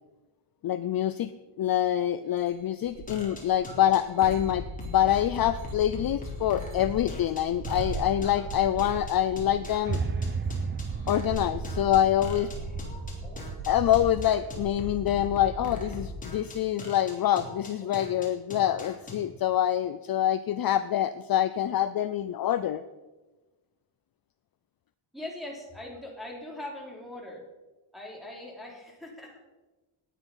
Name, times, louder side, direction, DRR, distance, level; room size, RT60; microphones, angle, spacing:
voice 1, 0.6-1.3 1.6-10.0 11.1-12.5 13.7-22.8, left 11 dB, 45° left, 12 dB, 0.5 m, -26 dB
sound 1, 2.4-2.5 2.8-14.7, right 3 dB, 70° right, 4.6 m, -40 dB
sound 2, 3.1-19.1, left 2 dB, 15° left, 3.6 m, -40 dB
sound 3, 9.9-16.0, right 5 dB, 25° right, 0.6 m, -35 dB
voice 2, 25.1-27.4 27.9-29.4, left 1 dB, ahead, -1 dB, 3.4 m, -41 dB
17.5 x 10.0 x 5.6 m, 1.1 s
wide cardioid pair, 180°, 49 cm